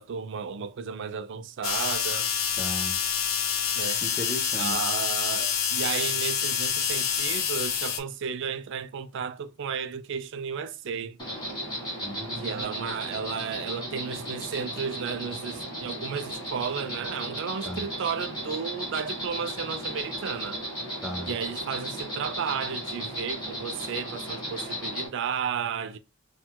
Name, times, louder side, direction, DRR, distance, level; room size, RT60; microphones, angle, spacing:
voice 1, 0.0-2.3 3.8-4.0 4.6-11.2 12.4-20.6 21.2-26.0, right 6 dB, 65° right, 0.4 m, -33 dB
sound 1, 1.6-8.0, left 8 dB, 80° left, 0.5 m, -27 dB
voice 2, 2.6-3.0 4.0-4.8 12.0-13.1 17.6-17.8 21.0-21.3, left 1 dB, 5° right, 0.8 m, -36 dB
Insect, 11.2-25.1, equal, 25° left, 1.7 m, -35 dB
4.3 x 2.2 x 2.2 m
head